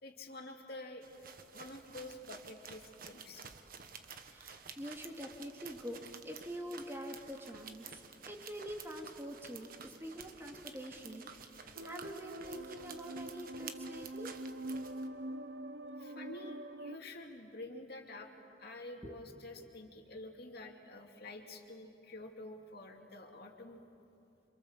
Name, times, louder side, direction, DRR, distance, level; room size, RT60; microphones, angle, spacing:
voice 1, 0.0-3.4 16.0-18.3 18.6-23.8, left 2 dB, 60° left, 2 dB, 2.6 m, -49 dB
sound 1, 1.0-15.1, right 6 dB, 50° right, 1.4 m, -52 dB
voice 2, 4.2-14.3 19.0-19.2 19.6-19.7, equal, 15° right, 2 dB, 2.3 m, -46 dB
sound 2, 11.8-17.0, right 1 dB, 85° right, 0.9 m, -44 dB
28.0 x 26.5 x 7.3 m, 2.8 s
head